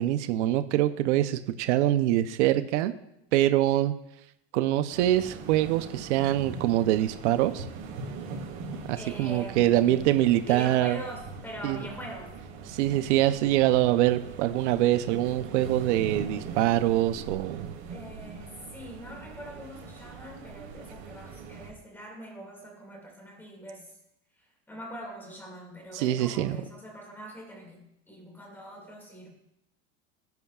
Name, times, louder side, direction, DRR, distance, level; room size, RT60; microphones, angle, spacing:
voice 1, 0.0-2.9 3.3-3.9 4.5-7.6 8.9-11.0 11.6-11.8 12.7-17.7 25.9-26.6, right 14 dB, 85° right, 11 dB, 0.7 m, -24 dB
sound 1, 4.9-21.7, right 4 dB, 70° right, 3.9 m, -41 dB
voice 2, 9.0-10.2 10.4-12.3 17.9-24.0 24.4-29.3, equal, 5° left, 0 dB, 2.2 m, -43 dB
17.0 x 10.5 x 2.4 m, 0.83 s
cardioid pair, 175°, 34 cm